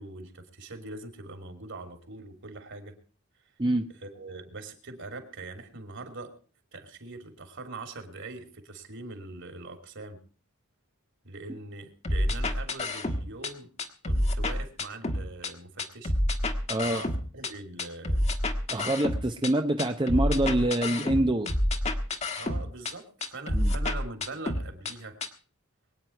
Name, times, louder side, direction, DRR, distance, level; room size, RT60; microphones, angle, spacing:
voice 1, 0.0-3.0 3.9-6.3 6.7-10.2 11.2-13.7 14.0-16.1 16.8-18.2 18.7-18.9 22.4-25.2, right 3 dB, 55° right, 7 dB, 3.0 m, -42 dB
sound 1, 12.0-13.5 13.8-15.5 15.8-17.5 17.8-19.5 19.8-22.9 23.2-24.9 25.2-25.3, left 1 dB, 30° left, 1.5 m, -28 dB
voice 2, 16.7-17.0 18.7-21.5 23.5-23.7, right 1 dB, 20° right, 6 dB, 0.7 m, -26 dB
23.0 x 9.5 x 4.5 m, 0.40 s
head